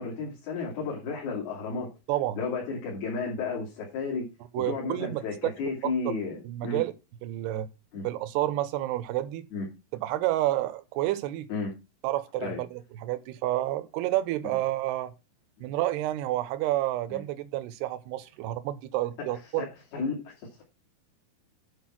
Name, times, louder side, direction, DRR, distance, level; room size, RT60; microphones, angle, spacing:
voice 1, 0.0-1.9 2.4-4.2 4.6-6.8 7.9-8.1 9.5-9.6 11.5-11.7 12.4-12.6 14.4-14.6 15.6-15.7 17.1-17.2 19.6-19.7 19.9-20.6, left 4 dB, 65° left, 4.9 m, -33 dB
voice 2, 2.1-2.4 4.5-5.2 6.1-6.2 6.4-6.9 7.2-7.7 8.0-9.5 9.9-11.5 12.0-15.1 15.6-19.7, right 15 dB, 80° right, 2.8 m, -29 dB
10.5 x 5.2 x 6.0 m
omnidirectional pair, 4.8 m